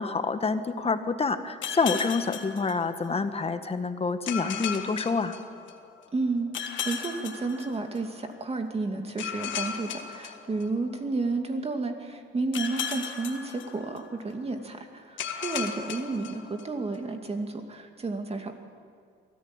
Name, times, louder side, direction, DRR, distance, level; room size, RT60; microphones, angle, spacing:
voice 1, 0.0-5.3, left 4 dB, 30° left, 9 dB, 1.5 m, -27 dB
sound 1, 1.6-3.4 4.3-6.0 6.5-8.3 9.2-11.2 12.5-14.3 15.2-17.0, left 7 dB, 75° left, 1.7 m, -36 dB
voice 2, 6.1-18.6, right 3 dB, 30° right, 5 dB, 2.2 m, -31 dB
23.0 x 14.0 x 8.9 m, 2.2 s
cardioid pair, 90°, 20 cm